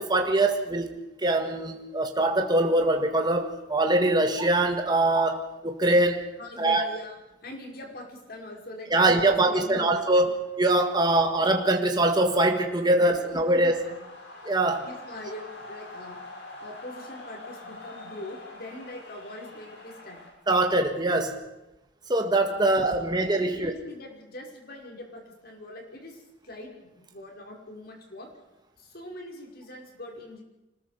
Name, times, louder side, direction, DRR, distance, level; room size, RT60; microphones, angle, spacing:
voice 1, 0.0-6.3 6.6-6.9 8.9-13.8 14.4-14.9 20.5-21.4 22.1-23.7, right 2 dB, 25° right, 3 dB, 1.8 m, -23 dB
voice 2, 6.4-10.3 13.1-14.0 14.8-16.2 16.6-20.2 22.6-23.1 23.4-28.3 28.8-30.4, left 1 dB, 55° left, 1 dB, 5.6 m, -43 dB
sound 1, 10.4-20.3, left 2 dB, 90° left, 7.3 m, -46 dB
26.0 x 20.0 x 5.2 m, 0.97 s
head